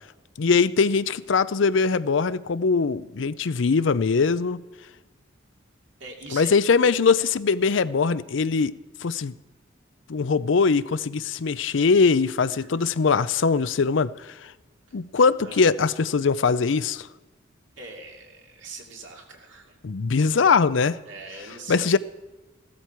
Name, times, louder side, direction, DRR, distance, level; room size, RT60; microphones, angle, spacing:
voice 1, 0.4-4.6 6.3-8.7 9.0-9.3 10.1-14.1 14.9-17.1 19.8-21.0 21.7-22.0, left 5 dB, 70° left, 0.5 m, -21 dB
voice 2, 6.0-6.5 12.4-12.7 15.4-15.6 16.5-16.6 17.8-19.8 21.1-22.0, right 3 dB, 65° right, 2.7 m, -42 dB
16.0 x 13.0 x 4.5 m
head